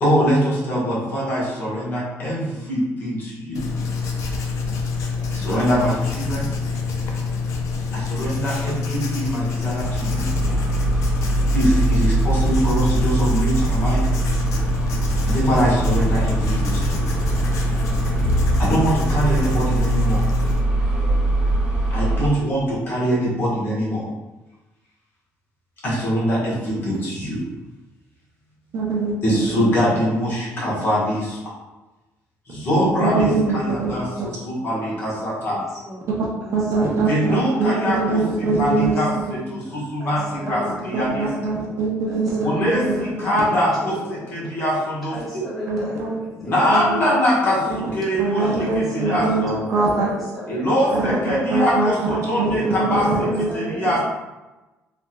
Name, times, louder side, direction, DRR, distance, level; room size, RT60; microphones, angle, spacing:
voice 1, 0.0-3.6 5.3-6.5 7.9-10.3 11.5-14.1 15.2-17.0 18.6-20.2 21.9-24.0 25.8-27.4 29.2-31.4 32.5-35.6 37.0-41.3 42.4-45.4 46.4-48.4 48.7-49.5 50.5-53.1 53.5-54.0, equal, 40° left, -7 dB, 1.2 m, -23 dB
Writing, 3.5-20.6, left 4 dB, 70° left, 0.5 m, -26 dB
sound 1, 9.8-22.3, right 2 dB, 20° right, 0.7 m, -22 dB
voice 2, 28.7-29.8 33.0-34.3 36.5-39.0 40.9-43.1 45.7-46.2 46.7-47.0 47.7-47.8 48.2-50.1 50.9-51.0 51.5-53.5, right 3 dB, 55° right, -4 dB, 0.7 m, -23 dB
voice 3, 34.3-35.0 35.5-36.1 36.4-37.4 38.8-40.9 42.1-44.4 45.1-47.1 48.4-50.9 52.9-54.0, equal, ahead, -9 dB, 1.3 m, -36 dB
3.3 x 2.7 x 2.2 m, 1.1 s
cardioid pair, 130°, 6 cm